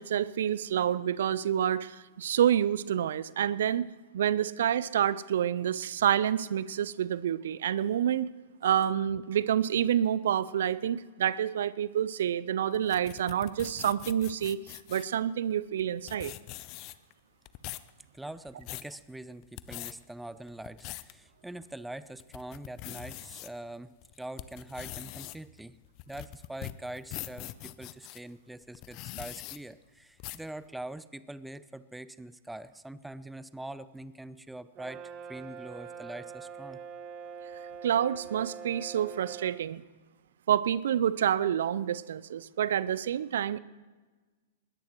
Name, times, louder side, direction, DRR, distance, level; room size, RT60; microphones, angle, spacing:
voice 1, 0.0-3.9 4.1-8.3 8.6-16.3 37.8-39.8 40.5-43.6, right 10 dB, 65° right, 18 dB, 0.5 m, -28 dB
sound 1, 12.7-15.1 15.8-15.9 16.1-17.1 17.4-17.9 18.4-18.9 19.4-19.9 20.5-21.1 21.6-21.7 22.2-23.5 24.0-28.2 28.7-29.6 30.2-30.5, left 17 dB, 40° left, 0.7 m, -42 dB
voice 2, 18.1-25.8 26.1-36.8, right 1 dB, 5° right, 16 dB, 0.6 m, -43 dB
Brass instrument, 34.7-39.6, right 6 dB, 35° right, 1.1 m, -43 dB
20.5 x 20.0 x 3.1 m, 1.3 s
figure-of-eight pair, 100°, 0 cm